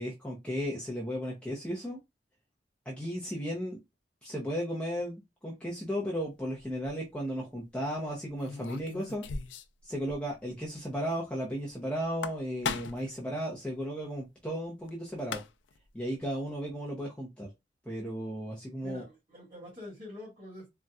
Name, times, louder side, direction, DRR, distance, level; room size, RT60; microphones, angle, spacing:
voice 1, 0.0-2.0 2.9-3.8 4.2-9.3 9.8-15.4 15.9-17.5 17.9-19.0, equal, 5° left, 0.6 m, -35 dB
sound 1, 6.6-6.9 8.4-9.8 10.1-10.2 10.5-10.6 12.0-13.1 14.9-15.0 15.2-15.8, left 5 dB, 90° left, 0.4 m, -37 dB
voice 2, 18.8-20.7, left 1 dB, 30° right, 1.7 m, -46 dB
4.0 x 2.2 x 2.3 m
head